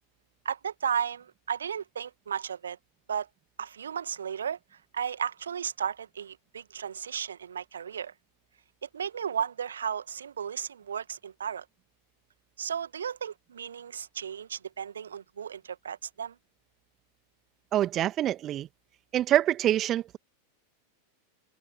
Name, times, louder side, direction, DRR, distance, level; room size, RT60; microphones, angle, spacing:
voice 1, 0.4-2.8 3.1-3.3 3.6-4.6 4.9-8.1 8.8-11.6 12.6-16.4, right 8 dB, 70° right, 1.4 m, -34 dB
voice 2, 17.7-18.7 19.1-20.2, right 12 dB, 30° right, 2.2 m, -25 dB
figure-of-eight pair, 90°, 0 cm